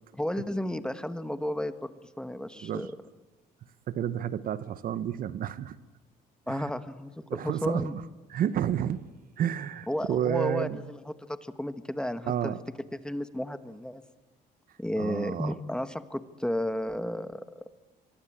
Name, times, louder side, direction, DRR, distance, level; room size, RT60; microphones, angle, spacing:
voice 1, 0.2-1.9 2.2-2.9 6.5-7.9 9.9-12.6 12.9-14.0 14.8-17.6, left 1 dB, 5° left, 11 dB, 1.2 m, -33 dB
voice 2, 3.9-5.8 6.5-6.7 7.3-8.0 8.3-9.1 9.4-10.8 12.3-12.6 15.0-15.6, right 10 dB, 55° right, 15 dB, 1.0 m, -30 dB
24.5 x 22.5 x 8.8 m, 1.2 s
cardioid pair, 110°, 17 cm